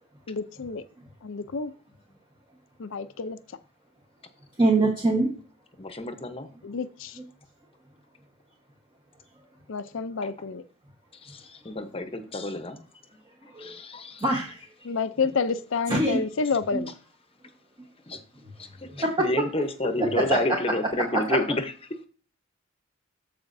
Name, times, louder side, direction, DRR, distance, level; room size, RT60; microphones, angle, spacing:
voice 1, 0.3-0.8 1.2-1.7 2.8-3.4 6.6-7.2 9.7-10.6 14.8-16.9, left 4 dB, 70° left, 12 dB, 0.5 m, -29 dB
voice 2, 4.6-5.3 13.5-13.7 14.2-14.6 15.9-16.2 20.3-20.4, right 2 dB, 25° right, 0 dB, 1.2 m, -23 dB
voice 3, 5.8-6.5 10.2-10.3 11.1-12.9 13.1-14.4 18.1-18.2 18.6-22.0, left 2 dB, 30° left, 8 dB, 0.9 m, -30 dB
13.5 x 5.0 x 2.6 m, 0.41 s
head